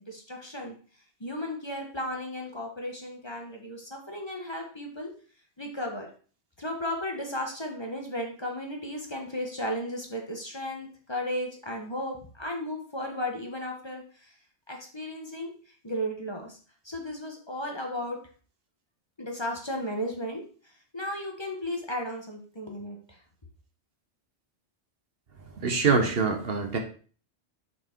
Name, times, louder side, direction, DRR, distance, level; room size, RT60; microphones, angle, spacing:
voice 1, 0.1-0.7 1.2-5.1 5.6-6.1 6.6-14.3 14.7-15.5 15.8-16.6 16.8-18.2 19.2-20.4 20.9-23.2, left 1 dB, 25° left, 1 dB, 1.2 m, -34 dB
voice 2, 25.6-26.8, right 4 dB, 60° right, 5 dB, 1.2 m, -24 dB
6.3 x 4.5 x 4.5 m, 0.40 s
omnidirectional pair, 1.1 m